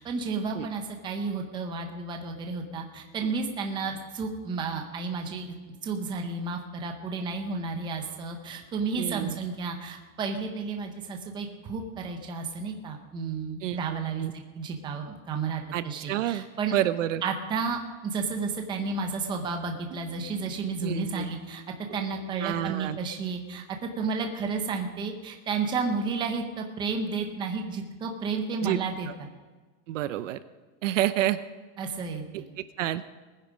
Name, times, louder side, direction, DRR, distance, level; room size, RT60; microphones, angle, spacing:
voice 1, 0.0-5.6 5.8-16.7 17.2-21.6 21.9-29.3 31.8-32.4, right 4 dB, 10° right, 4 dB, 0.8 m, -32 dB
voice 2, 9.0-9.4 13.6-13.8 14.2-14.3 15.7-16.4 16.7-17.2 20.8-21.3 22.4-23.0 28.6-28.8 29.9-30.4 30.8-31.4 32.8-33.0, right 13 dB, 65° right, 13 dB, 0.8 m, -28 dB
sound 1, 18.9-23.6, right 4 dB, 45° right, 1.3 m, -50 dB
19.5 x 10.0 x 5.1 m, 1.3 s
supercardioid pair, 175°, 41 cm